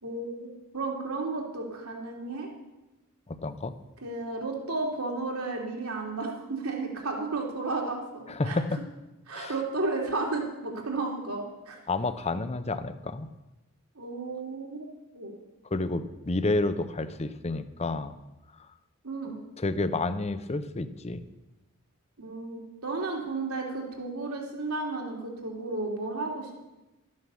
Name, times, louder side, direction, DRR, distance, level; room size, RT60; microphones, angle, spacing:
voice 1, 0.0-2.5 4.0-8.6 9.3-11.8 13.9-14.9 15.1-15.3 19.0-19.4 22.2-26.5, right 3 dB, 80° right, 0 dB, 3.0 m, -33 dB
voice 2, 3.3-3.7 8.3-8.8 9.3-9.5 11.9-13.3 15.7-18.2 19.6-21.2, left 2 dB, 30° left, 12 dB, 0.7 m, -30 dB
13.0 x 9.6 x 7.0 m, 1.0 s
head